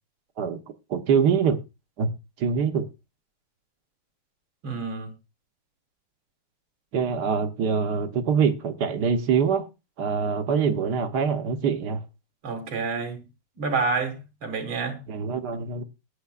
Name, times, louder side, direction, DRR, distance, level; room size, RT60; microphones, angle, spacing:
voice 1, 0.9-1.6 2.0-2.1 2.4-2.9 6.9-9.7 10.0-12.0 15.1-15.8, right 6 dB, 60° right, 1.4 m, -24 dB
voice 2, 4.6-5.1 12.4-13.2 13.6-15.0, right 4 dB, 85° right, 2.7 m, -28 dB
19.5 x 8.8 x 2.4 m
omnidirectional pair, 2.2 m